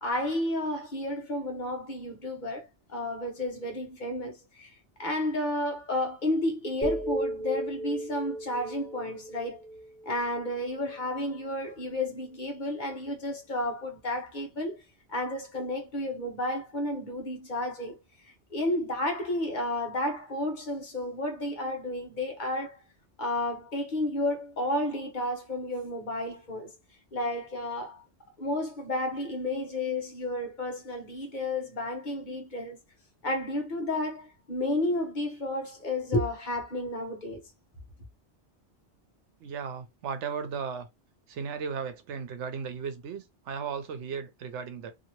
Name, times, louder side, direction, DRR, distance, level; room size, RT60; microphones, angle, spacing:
voice 1, 0.0-4.7 5.0-9.6 10.1-14.8 15.1-18.0 18.5-22.8 23.2-26.7 27.1-28.0 28.4-32.8 33.2-37.4, left 1 dB, 45° left, 0.9 m, -32 dB
sound 1, 6.8-10.9, right 1 dB, 15° left, 0.7 m, -35 dB
voice 2, 39.4-40.9 41.3-44.9, right 6 dB, 90° right, 0.9 m, -36 dB
2.7 x 2.7 x 2.9 m
omnidirectional pair, 1.2 m